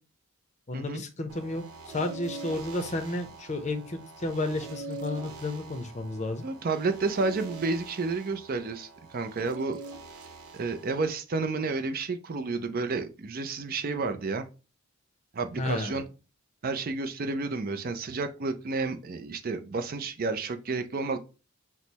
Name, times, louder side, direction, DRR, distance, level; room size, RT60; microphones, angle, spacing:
voice 1, 0.7-6.5 15.6-16.0, left 2 dB, 30° left, 0.6 m, -32 dB
sound 1, 1.3-11.1, right 3 dB, 90° right, 0.8 m, -44 dB
voice 2, 6.4-9.8 10.5-14.4 15.3-16.0 16.6-21.2, right 3 dB, 40° right, 0.4 m, -31 dB
6.2 x 2.1 x 4.0 m
head